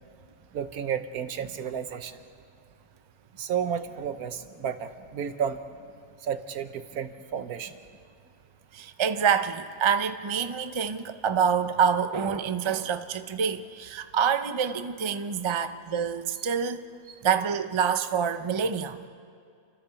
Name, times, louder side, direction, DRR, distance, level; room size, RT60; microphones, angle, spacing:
voice 1, 0.5-2.2 3.4-5.6 6.2-7.7, right 8 dB, 80° right, 9 dB, 1.4 m, -32 dB
voice 2, 8.7-16.8 17.2-19.0, right 7 dB, 30° right, 9 dB, 0.5 m, -26 dB
30.0 x 13.0 x 7.0 m, 2.4 s
omnidirectional pair, 1.5 m